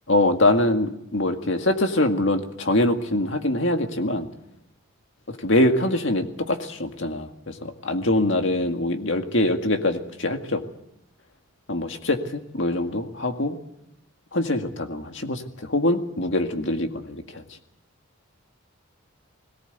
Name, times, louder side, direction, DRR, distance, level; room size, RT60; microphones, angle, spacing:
voice 1, 0.1-4.3 5.3-10.6 11.7-13.6 14.3-17.4, left 1 dB, 60° left, 6 dB, 2.0 m, -24 dB
21.0 x 18.0 x 8.1 m, 0.81 s
head